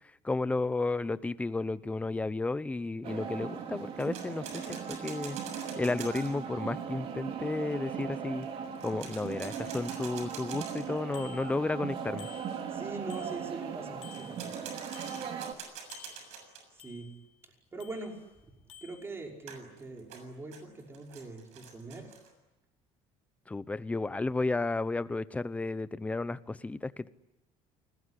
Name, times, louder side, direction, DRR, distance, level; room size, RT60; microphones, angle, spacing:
voice 1, 0.2-5.4 5.7-8.5 8.8-12.3 23.5-27.1, left 3 dB, 10° left, 15 dB, 0.9 m, -33 dB
sound 1, 3.0-15.5, right 7 dB, 50° right, 3.4 m, -39 dB
sound 2, 4.0-6.3 8.7-11.0 14.1-16.6 19.5-22.3, right 6 dB, 70° right, 6.9 m, -46 dB
Bicycle bell, 11.1-11.9 12.2-13.7 14.0-15.6 15.9-17.3 17.8-18.4 18.7-19.1, left 8 dB, 60° left, 3.2 m, -54 dB
voice 2, 12.7-14.5 16.8-17.1 17.7-18.2 18.8-22.1, right 3 dB, 20° right, 1 dB, 5.6 m, -42 dB
29.0 x 20.5 x 9.9 m, 0.99 s
cardioid pair, 135°, 12 cm